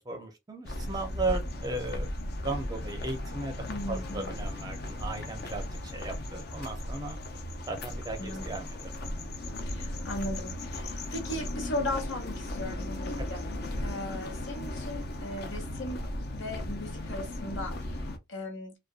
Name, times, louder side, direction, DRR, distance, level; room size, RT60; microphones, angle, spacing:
voice 1, 0.0-2.1 2.4-5.7 5.9-7.2 7.7-8.9 13.2-13.3, right 2 dB, 20° right, 0.5 m, -36 dB
sound 1, 0.6-18.2, left 1 dB, 50° left, 0.5 m, -36 dB
voice 2, 3.7-4.3 8.2-8.4 9.7-13.5 13.8-16.0 16.3-18.8, left 1 dB, 75° left, 1.0 m, -37 dB
2.5 x 2.2 x 2.4 m
head